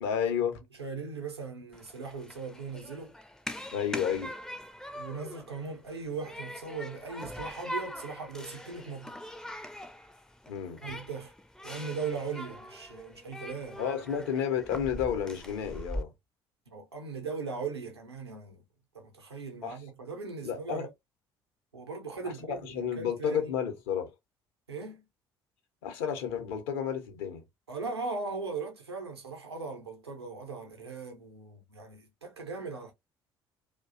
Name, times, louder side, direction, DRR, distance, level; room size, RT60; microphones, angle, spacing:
voice 1, 0.0-0.6 3.7-4.3 10.5-10.8 13.8-16.1 19.6-19.8 20.4-20.9 22.2-24.1 25.8-27.4, left 8 dB, 65° left, 0.7 m, -31 dB
voice 2, 0.8-3.1 4.9-9.3 10.8-11.3 11.6-13.8 16.7-18.6 18.9-20.9 21.7-23.5 24.7-25.0 27.7-32.9, right 4 dB, 85° right, 0.6 m, -39 dB
Human group actions, 1.7-16.0, equal, 5° left, 0.4 m, -42 dB
2.6 x 2.2 x 2.4 m
figure-of-eight pair, 50°, 13 cm